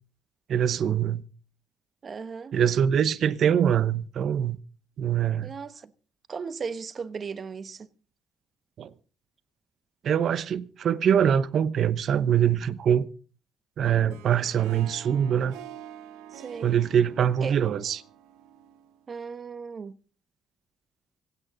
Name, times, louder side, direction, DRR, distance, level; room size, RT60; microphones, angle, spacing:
voice 1, 0.5-1.2 2.5-4.6 5.0-5.5 8.8-8.9 10.0-13.1 13.8-15.6 16.6-18.0, right 9 dB, 65° right, 0.9 m, -23 dB
voice 2, 2.0-2.6 5.4-5.9 6.3-7.9 16.3-16.7 17.4-17.5 19.1-20.0, right 5 dB, 45° right, 1.1 m, -36 dB
Harp, 13.9-19.1, right 11 dB, 90° right, 1.1 m, -47 dB
25.5 x 8.9 x 3.9 m
supercardioid pair, 70°, 0 cm